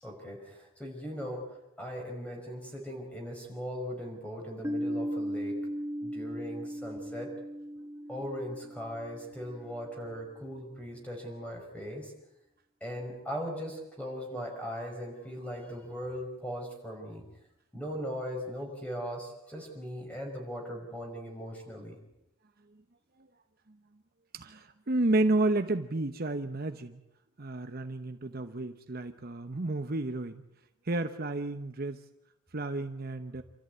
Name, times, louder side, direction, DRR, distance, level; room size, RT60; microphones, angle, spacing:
voice 1, 0.0-1.4 1.8-5.6 6.0-7.3 8.1-12.1 12.8-17.2 17.7-22.0, equal, 5° left, 1 dB, 5.6 m, -39 dB
Piano, 4.6-10.0, equal, 15° right, 2.2 m, -37 dB
voice 2, 24.3-27.0 27.4-30.4 30.8-32.0 32.5-33.4, right 2 dB, 45° right, 8 dB, 1.0 m, -31 dB
28.0 x 14.0 x 9.3 m, 0.89 s
head